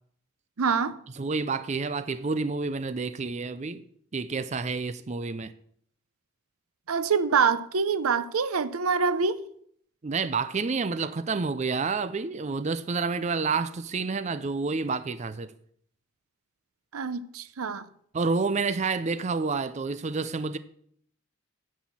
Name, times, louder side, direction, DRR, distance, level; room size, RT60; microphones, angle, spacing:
voice 1, 0.6-1.0 6.9-9.4 16.9-17.9, right 5 dB, 90° right, 0.7 m, -25 dB
voice 2, 1.2-3.8 4.1-5.5 10.0-15.5 18.1-20.6, right 4 dB, 30° right, 0.4 m, -29 dB
10.0 x 6.3 x 7.3 m
head